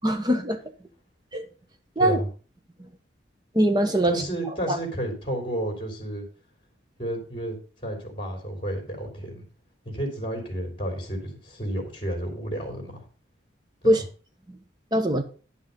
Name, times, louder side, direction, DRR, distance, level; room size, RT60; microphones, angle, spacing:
voice 1, 0.0-0.6 1.3-1.4 2.0-2.2 3.5-4.1 4.7-4.8 13.8-14.0 14.9-15.2, equal, 20° right, 6 dB, 1.1 m, -21 dB
voice 2, 2.0-2.3 4.0-6.2 7.0-9.4 9.8-13.0 13.8-14.0, right 1 dB, 30° left, 2 dB, 3.2 m, -31 dB
10.5 x 5.6 x 5.3 m, 0.38 s
head